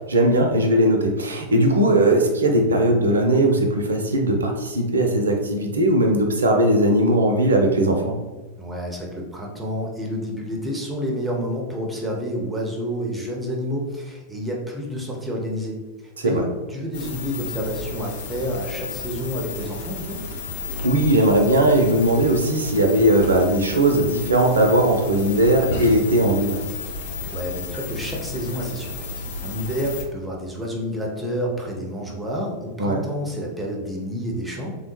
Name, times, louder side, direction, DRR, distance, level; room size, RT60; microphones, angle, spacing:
voice 1, 0.1-8.2 16.2-16.4 20.8-26.6 32.8-33.0, right 1 dB, 70° right, 3 dB, 0.5 m, -19 dB
voice 2, 8.6-15.8 16.2-20.2 27.3-28.9 29.4-34.8, equal, 10° right, -2 dB, 0.6 m, -29 dB
sound 1, 16.9-30.0, left 3 dB, 60° left, 0.4 m, -32 dB
3.3 x 2.1 x 3.0 m, 1.2 s
figure-of-eight pair, 90°, 0 cm